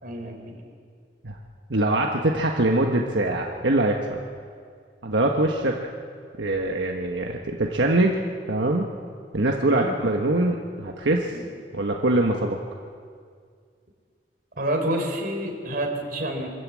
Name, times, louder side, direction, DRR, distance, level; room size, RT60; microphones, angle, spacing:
voice 1, 0.0-0.6 9.6-9.9 11.3-11.5 14.6-16.5, right 1 dB, 55° right, 2 dB, 3.9 m, -28 dB
voice 2, 1.7-4.2 5.0-5.8 6.4-8.2 8.5-8.9 9.3-11.3 11.7-12.6, right 2 dB, 85° right, 1 dB, 1.4 m, -23 dB
24.5 x 14.0 x 8.5 m, 2.1 s
head